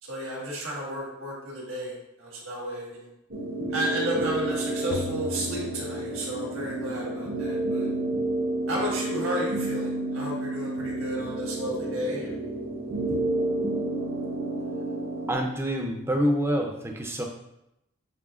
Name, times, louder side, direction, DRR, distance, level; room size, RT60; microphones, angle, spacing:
voice 1, 0.0-3.1 3.7-7.9 8.7-12.3 13.1-13.2, equal, 85° right, -3 dB, 1.6 m, -32 dB
sound 1, 3.3-15.3, right 2 dB, 45° right, 0.7 m, -30 dB
sound 2, 4.9-6.8, left 3 dB, 45° left, 0.3 m, -39 dB
voice 2, 15.3-17.2, equal, 10° right, 2 dB, 0.5 m, -26 dB
6.8 x 3.0 x 2.4 m, 0.84 s
head